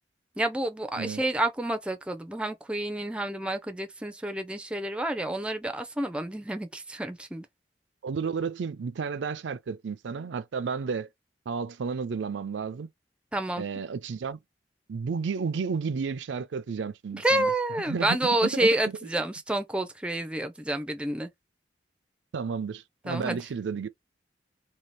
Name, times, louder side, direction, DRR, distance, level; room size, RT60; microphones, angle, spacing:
voice 1, 0.4-7.5 13.3-13.7 17.1-21.3 23.1-23.4, right 1 dB, 5° right, 0.4 m, -29 dB
voice 2, 8.0-11.1 11.5-12.9 13.6-14.4 14.9-17.5 17.9-18.2 18.4-18.7 22.3-23.9, right 5 dB, 85° right, 0.4 m, -32 dB
2.8 x 2.7 x 3.2 m
head